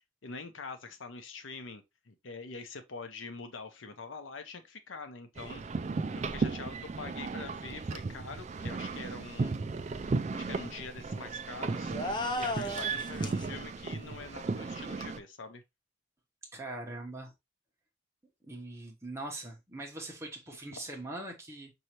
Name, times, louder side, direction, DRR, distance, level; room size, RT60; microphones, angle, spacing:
voice 1, 0.0-5.6 6.1-9.7 10.3-11.9 12.3-15.6, left 4 dB, 85° left, 0.7 m, -45 dB
sound 1, 5.3-15.2, right 4 dB, 35° right, 0.3 m, -35 dB
sound 2, 11.9-13.5, left 1 dB, 25° left, 0.5 m, -34 dB
voice 2, 16.5-17.3 18.4-21.7, right 2 dB, 15° right, 1.1 m, -42 dB
5.4 x 2.8 x 2.9 m
head